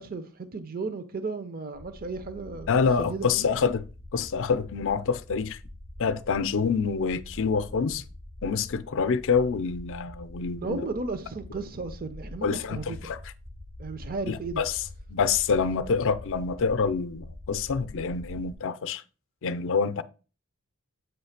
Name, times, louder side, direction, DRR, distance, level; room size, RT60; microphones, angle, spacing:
voice 1, 0.0-2.7 3.0-3.5 10.6-13.1 13.8-14.6, right 3 dB, 40° right, 0.6 m, -34 dB
sound 1, 1.7-18.5, left 1 dB, 75° right, 3.8 m, -45 dB
voice 2, 2.7-3.9 4.1-5.6 6.0-8.0 8.4-10.9 12.4-13.2 14.3-14.7 15.1-19.0 19.4-20.0, left 5 dB, 60° left, 0.5 m, -26 dB
8.0 x 3.2 x 5.7 m
head